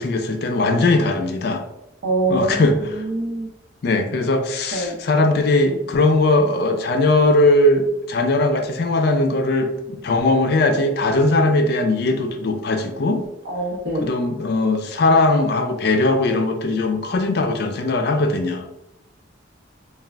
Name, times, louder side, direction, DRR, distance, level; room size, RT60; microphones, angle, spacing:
voice 1, 0.0-1.6 2.3-3.0 3.8-13.2 13.9-18.6, left 2 dB, 55° left, 5 dB, 0.4 m, -19 dB
voice 2, 2.0-2.7 3.1-3.5 4.7-4.9 13.5-14.1, right 2 dB, 65° right, -2 dB, 0.8 m, -23 dB
2.4 x 2.2 x 3.2 m, 0.85 s
head